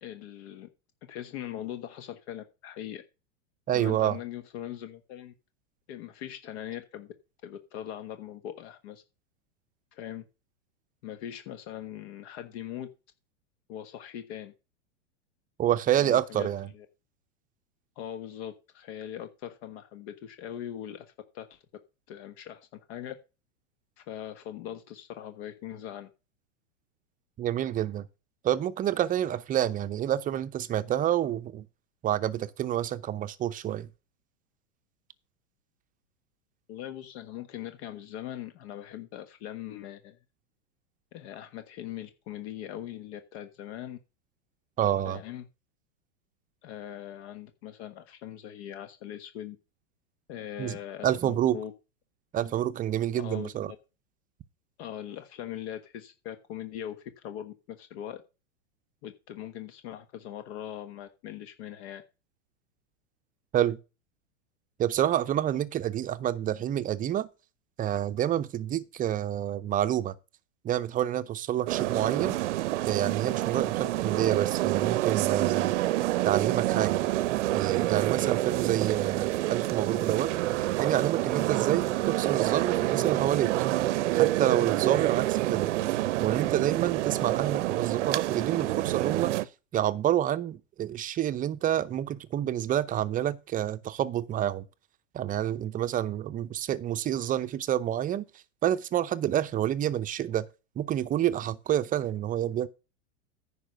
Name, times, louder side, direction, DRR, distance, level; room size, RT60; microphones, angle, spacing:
voice 1, 0.0-0.7 1.1-3.0 3.7-5.3 5.9-7.1 7.4-9.0 9.9-10.2 11.0-12.9 13.7-14.5 16.0-16.5 16.7-16.9 18.0-21.1 21.3-21.6 22.1-23.2 24.0-26.1 36.7-40.2 41.1-44.0 45.0-45.5 46.6-49.6 50.3-51.7 53.1-53.8 54.8-58.2 59.0-62.0, left 11 dB, 55° left, 1.4 m, -41 dB
voice 2, 3.7-4.2 15.6-16.7 27.4-28.1 28.4-31.6 32.0-33.9 44.8-45.2 50.6-50.8 51.0-51.6 52.3-53.7 63.5-63.8 64.8-67.3 67.8-70.1 70.6-72.4 72.9-75.7 76.2-77.0 77.5-80.3 80.8-83.5 84.1-85.7 86.2-89.3 89.7-94.7 95.1-98.2 98.6-100.5 100.8-102.7, right 11 dB, 20° right, 0.6 m, -28 dB
sound 1, 71.7-89.5, right 16 dB, 70° right, 0.7 m, -27 dB
10.0 x 4.9 x 6.6 m
hypercardioid pair, 120°, 38 cm